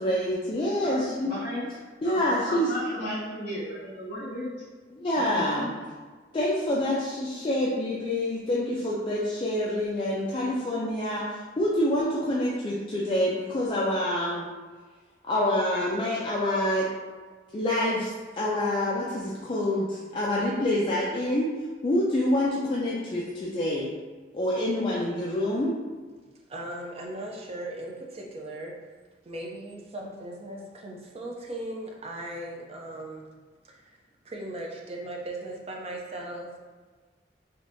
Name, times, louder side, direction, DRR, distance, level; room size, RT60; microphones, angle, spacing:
voice 1, 0.0-1.3 2.0-2.9 4.9-5.7 6.3-14.5 15.2-16.9 17.5-18.1 18.4-21.5 21.8-23.9 24.3-25.7, left 1 dB, 30° left, -6 dB, 0.4 m, -27 dB
voice 2, 1.2-1.7 2.0-4.5 5.4-5.5, equal, 60° left, -13 dB, 1.5 m, -34 dB
voice 3, 26.5-28.7 29.2-33.3 33.6-34.0 34.2-36.5, right 1 dB, 35° right, -1 dB, 0.5 m, -38 dB
3.4 x 2.7 x 2.6 m, 1.4 s
head